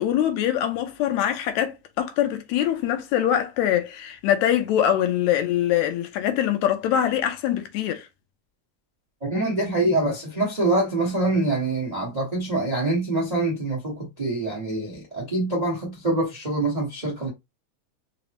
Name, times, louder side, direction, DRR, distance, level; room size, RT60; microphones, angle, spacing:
voice 1, 0.0-8.1, left 10 dB, 80° left, 1.8 m, -23 dB
voice 2, 9.2-17.3, right 2 dB, 70° right, 0.3 m, -25 dB
5.1 x 2.1 x 2.9 m
omnidirectional pair, 3.4 m